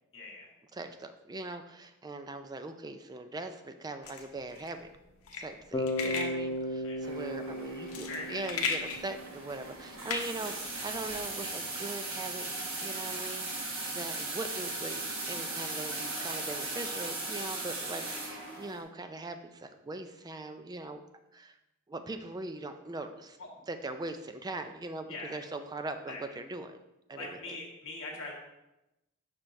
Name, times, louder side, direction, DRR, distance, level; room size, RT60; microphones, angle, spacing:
voice 1, 0.1-0.5 6.8-7.0 8.1-8.6 25.1-25.4 26.1-26.2 27.1-28.3, left 2 dB, 65° left, -1 dB, 1.5 m, -41 dB
voice 2, 0.7-4.9 5.3-12.5 12.8-21.0 21.3-21.6 21.9-23.4 23.7-26.8 27.1-27.4, right 2 dB, 20° right, 8 dB, 0.3 m, -41 dB
sound 1, 4.0-11.2, left 5 dB, 90° left, 0.8 m, -38 dB
Bass guitar, 5.7-9.7, left 1 dB, 20° left, 0.6 m, -36 dB
sound 2, 7.0-18.8, right 2 dB, 65° right, 1.2 m, -38 dB
6.3 x 5.7 x 2.6 m, 0.91 s
head